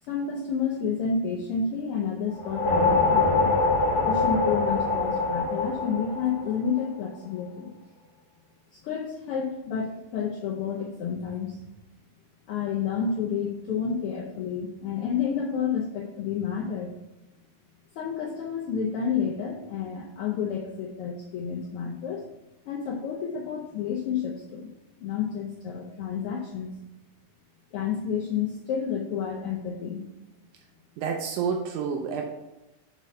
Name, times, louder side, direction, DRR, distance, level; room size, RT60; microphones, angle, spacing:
voice 1, 0.1-3.6 4.0-7.7 8.8-11.6 12.5-17.0 17.9-22.3 22.7-24.7 25.0-26.7 27.7-30.0, left 6 dB, 75° left, -1 dB, 1.3 m, -30 dB
sound 1, 2.3-6.9, left 3 dB, 25° left, 2.1 m, -24 dB
voice 2, 31.0-32.3, right 6 dB, 85° right, 2 dB, 2.1 m, -29 dB
6.0 x 4.2 x 5.3 m, 1.0 s
omnidirectional pair, 3.4 m